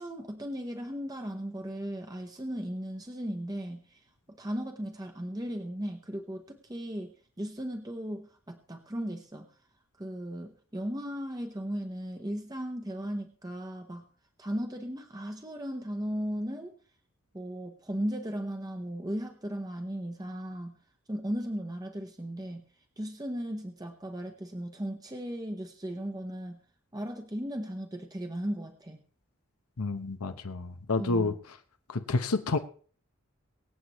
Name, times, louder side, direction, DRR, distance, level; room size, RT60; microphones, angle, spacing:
voice 1, 0.0-9.5 10.0-14.1 14.4-16.7 17.3-20.8 21.1-22.6 23.0-26.6 26.9-29.0 31.0-31.4, equal, 15° right, 0.9 m, -36 dB
voice 2, 29.8-31.3 31.9-32.6, left 3 dB, 85° left, 0.9 m, -29 dB
24.0 x 8.1 x 3.0 m
head